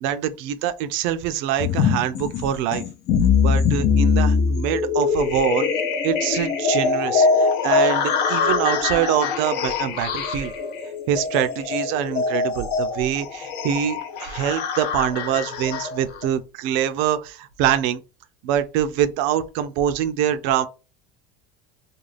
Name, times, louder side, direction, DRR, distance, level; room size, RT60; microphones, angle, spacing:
voice 1, 0.0-2.8 3.4-5.7 6.0-10.5 11.1-18.0 18.4-20.7, right 10 dB, 70° right, 0.5 m, -24 dB
sound 1, 1.6-16.2, left 5 dB, 55° left, 0.6 m, -22 dB
2.4 x 2.3 x 3.2 m
cardioid pair, 140°, 21 cm